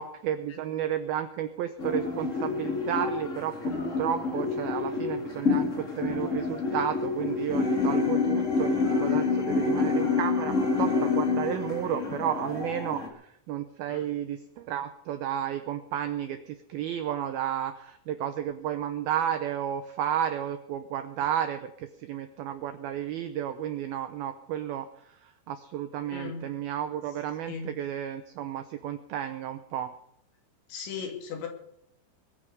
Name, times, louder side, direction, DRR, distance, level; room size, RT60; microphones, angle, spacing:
voice 1, 0.0-29.9, right 10 dB, 85° right, 9 dB, 2.1 m, -32 dB
sound 1, 1.8-13.1, left 4 dB, 55° left, 0.8 m, -28 dB
voice 2, 26.1-26.5 27.5-27.7 30.7-31.5, left 6 dB, 75° left, 3 dB, 4.9 m, -37 dB
21.5 x 9.2 x 6.6 m, 0.74 s
omnidirectional pair, 5.4 m